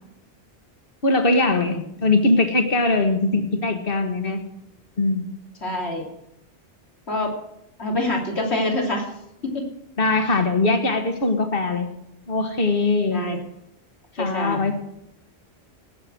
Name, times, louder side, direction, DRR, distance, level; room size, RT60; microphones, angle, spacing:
voice 1, 1.0-4.4 5.0-5.3 10.0-11.9 12.3-13.2 14.2-14.8, left 2 dB, 60° left, 6 dB, 1.9 m, -21 dB
voice 2, 5.6-6.0 7.1-7.3 7.8-9.1 9.4-9.7 13.1-13.4 14.2-14.7, left 1 dB, 90° left, 1 dB, 3.2 m, -26 dB
18.5 x 6.9 x 6.2 m, 0.81 s
omnidirectional pair, 1.1 m